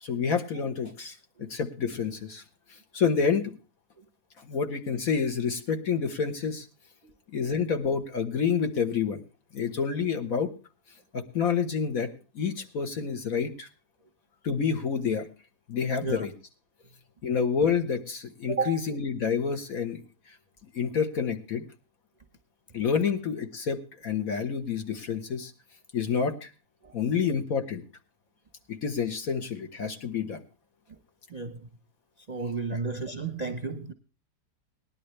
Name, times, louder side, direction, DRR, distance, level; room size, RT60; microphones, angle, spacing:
voice 1, 0.0-2.4 2.9-3.5 4.4-6.7 7.3-9.2 9.5-10.5 11.1-12.1 12.4-13.7 14.4-15.3 15.7-16.3 17.2-20.0 20.7-21.6 22.7-25.5 25.9-26.5 26.9-27.8 28.7-30.4 32.7-32.8, left 6 dB, 60° left, 1.7 m, -28 dB
voice 2, 18.5-18.8 26.8-26.9 31.3-31.6 32.3-33.9, right 4 dB, 30° right, 0.8 m, -32 dB
18.5 x 11.0 x 3.2 m
omnidirectional pair, 1.8 m